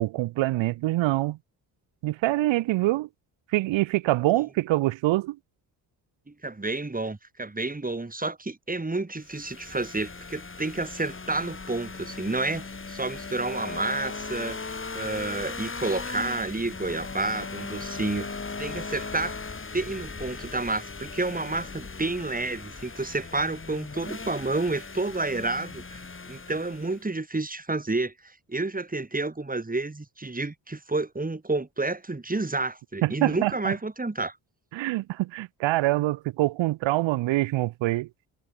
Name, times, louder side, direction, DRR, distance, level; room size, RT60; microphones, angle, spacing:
voice 1, 0.0-1.4 2.0-3.1 3.5-5.4 33.0-33.7 34.7-38.1, right 17 dB, 85° right, 1.5 m, -25 dB
voice 2, 6.3-14.6 14.9-19.4 19.7-26.0 26.3-34.4, right 2 dB, 20° right, 4.0 m, -30 dB
sound 1, 9.2-27.1, left 4 dB, 25° left, 3.0 m, -38 dB
supercardioid pair, 60°, 44 cm